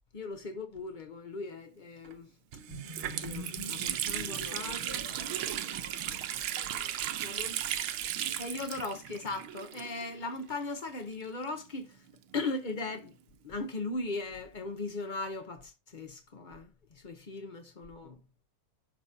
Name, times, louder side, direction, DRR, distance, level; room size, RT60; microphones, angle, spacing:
voice 1, 0.1-2.3 3.1-5.0 7.2-7.8 8.4-12.1 12.3-13.2 13.4-18.2, left 3 dB, 85° left, 0.4 m, -38 dB
Water tap faucet, 2.0-2.1 2.5-10.3 10.5-10.6 11.4-13.0, right 11 dB, 90° right, 1.6 m, -36 dB
sound 1, 2.7-8.3, equal, 25° right, 5.5 m, -46 dB
voice 2, 4.2-5.6 6.5-7.4 8.2-8.6 17.4-17.5, left 5 dB, 55° left, 1.7 m, -54 dB
11.5 x 4.1 x 2.7 m
omnidirectional pair, 2.3 m